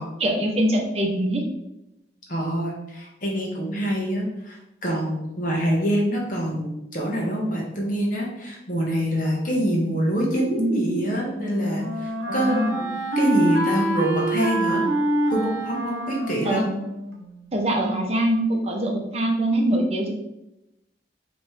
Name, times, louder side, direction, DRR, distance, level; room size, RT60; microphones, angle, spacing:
voice 1, 0.2-1.5 10.6-11.0 12.2-12.9 16.4-16.7 17.5-20.1, right 1 dB, 35° right, 0 dB, 0.7 m, -23 dB
voice 2, 2.3-12.6 13.2-14.8 15.3-16.7, equal, 45° left, -2 dB, 1.2 m, -25 dB
Wind instrument woodwind instrument, 10.9-17.7, right 1 dB, 70° right, 1.0 m, -26 dB
5.1 x 3.1 x 3.2 m, 0.90 s
head